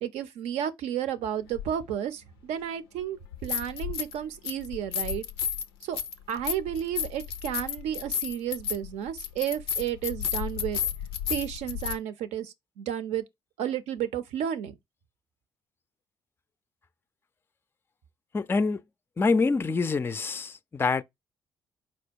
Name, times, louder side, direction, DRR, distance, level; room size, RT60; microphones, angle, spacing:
voice 1, 0.0-5.2 5.8-6.0 6.3-10.8 11.3-13.2 13.6-14.8, right 10 dB, 65° right, 0.6 m, -32 dB
sound 1, 1.5-1.7 3.2-4.2 4.4-12.0, left 8 dB, 85° left, 0.4 m, -32 dB
voice 2, 18.3-18.8 19.2-21.0, left 4 dB, 20° left, 0.4 m, -25 dB
4.3 x 2.2 x 4.4 m
hypercardioid pair, 50°, 12 cm